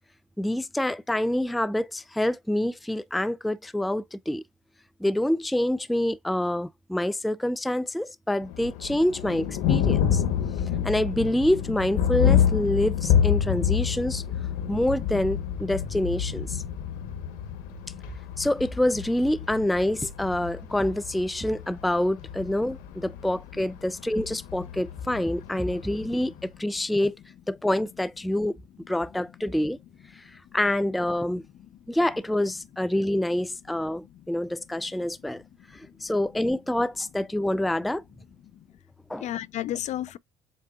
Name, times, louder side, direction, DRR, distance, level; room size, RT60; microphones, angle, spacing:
voice 1, 0.4-4.4 5.0-10.2 10.8-14.2 14.7-16.6 18.4-27.2 27.5-28.5 28.9-29.8 30.1-31.4 31.9-35.4 35.7-38.0 39.1-39.3, left 1 dB, ahead, 0.3 m, -26 dB
Thunder, 8.4-26.4, left 9 dB, 80° left, 1.1 m, -28 dB
voice 2, 34.8-35.1 35.7-35.9 38.5-38.7 39.2-40.2, left 12 dB, 55° left, 0.5 m, -34 dB
7.5 x 2.7 x 2.4 m
supercardioid pair, 70°, 14 cm